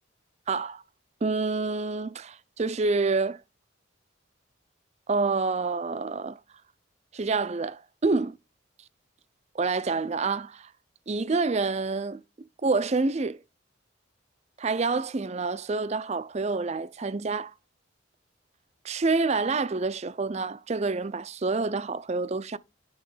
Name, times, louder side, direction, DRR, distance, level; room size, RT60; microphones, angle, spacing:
voice 1, 0.5-0.8 1.2-3.4 5.1-6.4 7.1-8.4 9.5-10.7 11.1-12.2 12.6-13.4 14.6-17.5 18.8-22.6, right 3 dB, 35° right, 0.5 m, -27 dB
10.5 x 3.7 x 5.5 m
head